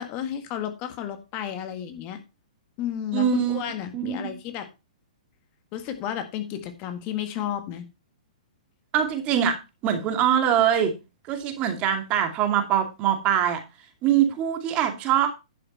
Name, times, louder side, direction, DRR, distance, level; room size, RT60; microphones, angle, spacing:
voice 1, 0.0-2.2 2.8-4.7 5.7-7.9, left 10 dB, 35° left, 8 dB, 1.8 m, -32 dB
voice 2, 3.1-3.6 3.9-4.3 8.9-9.6 9.8-10.9 11.3-13.6 14.0-15.3, right 9 dB, 30° right, 6 dB, 2.4 m, -23 dB
11.0 x 6.9 x 4.3 m, 0.27 s
hypercardioid pair, 130°, 4 cm